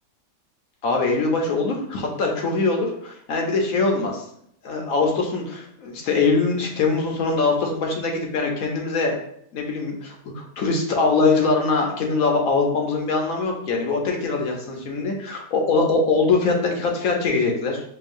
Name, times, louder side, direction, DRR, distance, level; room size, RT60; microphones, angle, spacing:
voice 1, 0.8-4.2 4.6-9.1 9.5-17.8, left 3 dB, 65° left, 1 dB, 1.1 m, -22 dB
4.5 x 3.0 x 2.5 m, 0.68 s
omnidirectional pair, 1.7 m